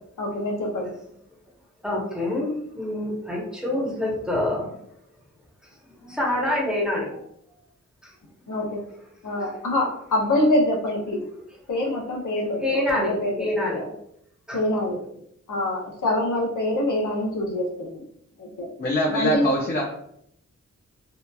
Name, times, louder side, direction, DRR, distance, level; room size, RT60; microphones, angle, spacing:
voice 1, 0.2-0.9 8.5-8.8 9.2-11.2 11.7-13.9 14.5-15.0 15.5-18.0 18.4-18.7 19.1-19.5, left 1 dB, 80° left, -1 dB, 0.7 m, -25 dB
voice 2, 1.8-4.8 5.9-7.1 8.0-8.1 8.4-8.5 9.3-9.6 12.6-13.9 14.5-14.6, left 1 dB, 5° right, -4 dB, 0.8 m, -27 dB
voice 3, 18.8-19.8, equal, 35° left, -3 dB, 0.5 m, -23 dB
2.8 x 2.3 x 2.2 m, 0.72 s
wide cardioid pair, 90°, 30 cm